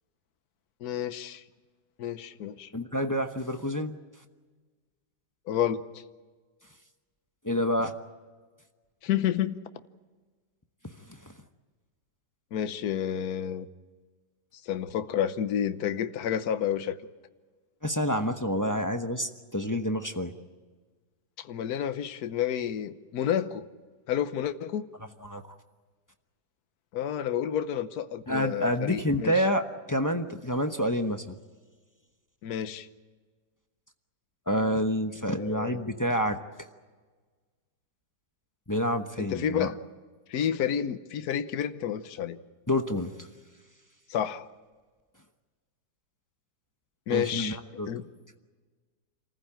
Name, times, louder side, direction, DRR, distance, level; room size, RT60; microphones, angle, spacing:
voice 1, 0.8-1.4 2.0-2.7 5.5-6.0 9.0-9.6 12.5-13.7 14.6-17.0 21.4-23.7 24.1-24.9 26.9-29.3 32.4-32.9 35.4-35.8 39.2-39.8 40.3-42.4 44.1-44.5 47.1-47.6 47.9-48.1, left 9 dB, 65° left, 11 dB, 1.4 m, -30 dB
voice 2, 2.7-4.0 7.4-7.9 10.8-10.9 11.2-11.3 17.8-20.3 25.2-25.4 28.3-31.2 34.5-36.4 38.7-39.7 42.7-43.3 47.1-47.9, equal, 15° left, 6 dB, 0.7 m, -28 dB
27.5 x 15.0 x 8.9 m, 1.4 s
omnidirectional pair, 1.8 m